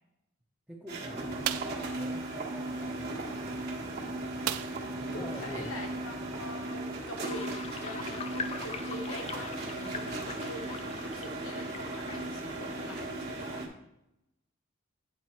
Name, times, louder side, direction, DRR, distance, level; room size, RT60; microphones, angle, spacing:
voice 1, 0.7-3.2 5.0-5.7, equal, 5° right, -3 dB, 0.7 m, -45 dB
sound 1, 0.9-13.7, right 2 dB, 50° right, 1.3 m, -37 dB
sound 2, 1.4-1.8 4.4-5.0 5.4-5.5 5.9-6.1, right 12 dB, 90° right, 0.4 m, -34 dB
voice 2, 4.6-7.5 7.8-13.6, left 2 dB, 70° left, 3 dB, 1.2 m, -44 dB
sound 3, 7.2-13.6, left 5 dB, 30° left, 0.4 m, -43 dB
8.9 x 3.5 x 4.4 m, 0.84 s
head